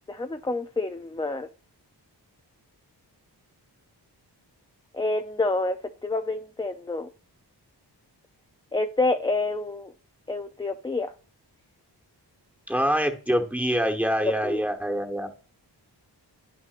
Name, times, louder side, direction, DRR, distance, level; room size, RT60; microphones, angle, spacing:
voice 1, 0.1-1.5 4.9-7.1 8.7-9.9 10.3-11.1 14.2-14.6, left 2 dB, 10° left, 7 dB, 0.4 m, -28 dB
voice 2, 12.7-15.3, equal, 5° right, 5 dB, 1.1 m, -25 dB
11.0 x 6.0 x 2.4 m, 0.39 s
wide cardioid pair, 110°, 42 cm